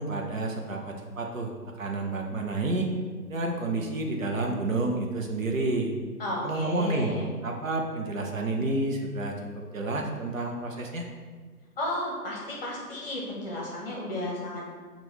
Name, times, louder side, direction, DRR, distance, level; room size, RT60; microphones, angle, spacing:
voice 1, 0.0-1.5 1.8-2.9 3.3-5.9 6.4-7.1 7.4-9.4 9.7-11.1, right 2 dB, 55° right, 1 dB, 0.7 m, -29 dB
voice 2, 6.2-7.2 11.8-14.7, left 1 dB, 35° left, -3 dB, 1.1 m, -33 dB
5.4 x 2.5 x 3.2 m, 1.5 s
figure-of-eight pair, 145°, 47 cm